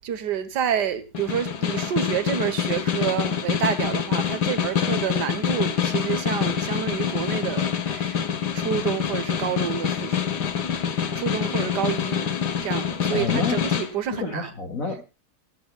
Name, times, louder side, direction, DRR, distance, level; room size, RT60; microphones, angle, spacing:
voice 1, 0.0-8.3 8.5-10.3 11.1-12.3 12.6-14.5, right 9 dB, 90° right, 1.8 m, -28 dB
Snare drum, 1.1-13.9, left 7 dB, 80° left, 1.9 m, -26 dB
voice 2, 13.1-13.6 14.1-15.0, left 4 dB, 55° left, 2.6 m, -28 dB
17.0 x 15.0 x 2.3 m
omnidirectional pair, 1.7 m